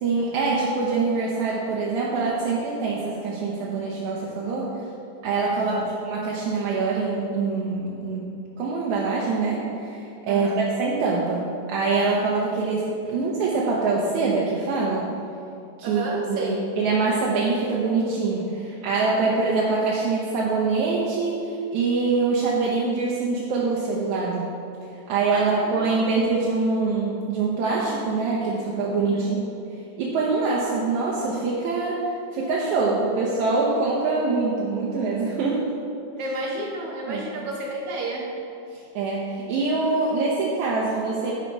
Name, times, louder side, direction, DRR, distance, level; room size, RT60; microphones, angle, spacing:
voice 1, 0.0-4.7 5.2-5.8 6.0-8.3 8.6-11.4 11.7-15.0 15.8-24.5 25.1-29.4 30.0-35.8 37.1-37.3 38.7-41.3, right 4 dB, 80° right, -5 dB, 2.3 m, -24 dB
voice 2, 5.5-5.9 10.3-10.6 15.8-16.7 25.3-26.1 29.0-29.3 36.2-38.3, right 2 dB, 65° right, -1 dB, 1.6 m, -32 dB
10.0 x 5.7 x 4.8 m, 2.6 s
omnidirectional pair, 3.3 m